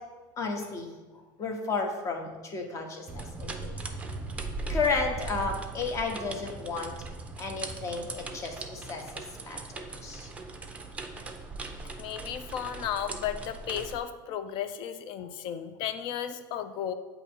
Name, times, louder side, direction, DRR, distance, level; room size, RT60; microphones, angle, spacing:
voice 1, 0.4-3.7 4.7-6.9 7.4-10.3 15.2-15.3, left 4 dB, 30° left, 3 dB, 0.9 m, -33 dB
sound 1, 3.1-14.0, right 3 dB, 15° right, 0.5 m, -39 dB
voice 2, 12.0-16.9, left 9 dB, 50° left, 11 dB, 0.5 m, -34 dB
7.8 x 2.7 x 4.3 m, 1.2 s
supercardioid pair, 135°, 10 cm